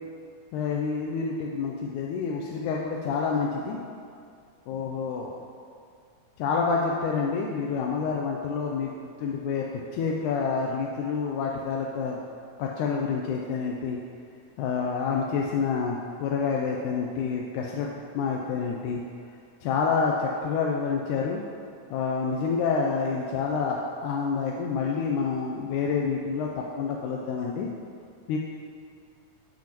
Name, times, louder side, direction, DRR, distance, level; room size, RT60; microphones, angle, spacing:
voice 1, 0.5-3.8 4.7-5.3 6.4-8.9 9.2-9.7 9.9-12.2 12.6-14.0 14.6-17.9 18.1-19.0 19.6-21.4 21.9-27.7 28.3-28.4, left 5 dB, 85° left, -1 dB, 2.1 m, -28 dB
11.5 x 7.3 x 3.0 m, 2.3 s
omnidirectional pair, 3.6 m